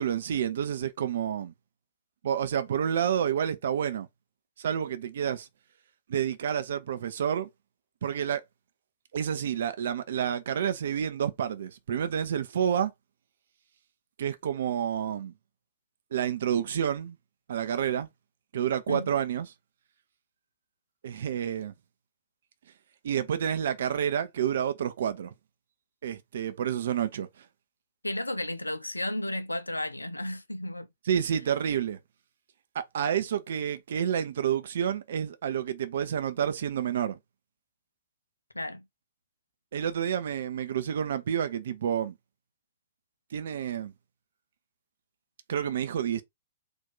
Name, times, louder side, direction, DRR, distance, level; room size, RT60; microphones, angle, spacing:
voice 1, 0.0-1.5 2.2-4.1 4.6-5.5 6.1-7.5 8.0-8.4 9.1-12.9 14.2-15.3 16.1-17.2 17.5-18.1 18.5-19.5 21.0-21.7 23.0-25.3 26.0-27.3 31.1-32.0 32.7-37.2 39.7-42.1 43.3-43.9 45.5-46.2, right 9 dB, 55° right, 0.7 m, -29 dB
voice 2, 28.0-30.9 38.5-38.8, left 1 dB, 85° left, 0.5 m, -33 dB
4.0 x 2.7 x 3.7 m
figure-of-eight pair, 110°, 0 cm